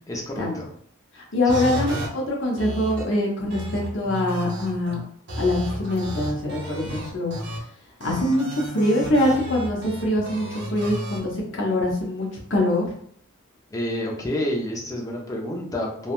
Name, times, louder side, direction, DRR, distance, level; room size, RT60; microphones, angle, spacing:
voice 1, 0.1-0.7 1.5-1.8 13.7-16.1, left 1 dB, 15° left, -1 dB, 0.5 m, -29 dB
voice 2, 1.1-5.0 5.4-7.4 8.0-12.9, left 1 dB, 60° left, -1 dB, 0.8 m, -24 dB
sound 1, 1.5-2.1 2.6-3.0 3.5-5.0 5.3-7.6 8.0-11.2, equal, 55° right, 0.8 m, -32 dB
3.3 x 2.1 x 2.4 m, 0.64 s
head